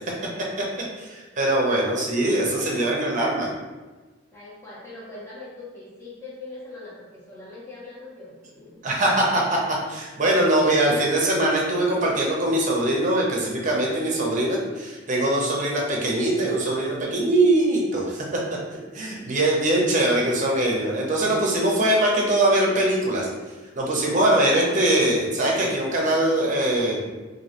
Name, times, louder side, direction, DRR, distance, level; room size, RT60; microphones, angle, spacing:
voice 1, 1.0-3.5 8.8-9.6 9.9-18.4 18.7-23.3 23.7-27.1, right 1 dB, 40° right, -2 dB, 0.6 m, -22 dB
voice 2, 2.6-3.1 4.3-8.8, left 2 dB, 15° left, -8 dB, 0.7 m, -41 dB
3.0 x 2.6 x 2.8 m, 1.3 s
head